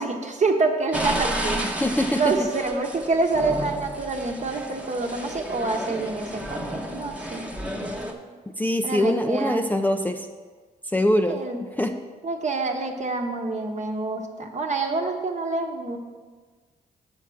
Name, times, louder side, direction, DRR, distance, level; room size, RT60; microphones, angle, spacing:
voice 1, 0.0-1.6 2.1-7.5 8.8-9.6 11.3-11.7 12.2-16.0, right 3 dB, 45° right, 3 dB, 1.1 m, -27 dB
sound 1, 0.9-8.1, right 1 dB, 5° right, 1.0 m, -32 dB
voice 2, 1.8-2.3 8.6-10.2 10.9-11.4 11.8-11.9, left 1 dB, 10° left, 5 dB, 0.5 m, -23 dB
6.9 x 4.5 x 6.2 m, 1.4 s
supercardioid pair, 55°, 17 cm